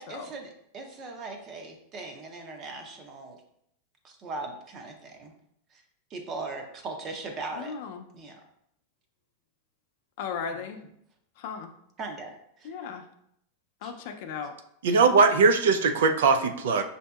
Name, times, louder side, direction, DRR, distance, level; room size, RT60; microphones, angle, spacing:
voice 1, 0.0-3.4 4.0-5.3 5.7-5.8 6.1-7.8 8.1-8.4 10.5-10.6 12.0-12.7 13.8-13.9, right 3 dB, 30° right, 4 dB, 0.6 m, -39 dB
voice 2, 7.6-8.1 10.2-10.8 11.4-11.7 12.6-13.1 13.8-14.5, left 6 dB, 60° left, 6 dB, 0.4 m, -36 dB
voice 3, 14.8-16.8, right 4 dB, 85° right, 7 dB, 0.4 m, -20 dB
5.3 x 2.6 x 2.3 m, 0.73 s
supercardioid pair, 145°, 0 cm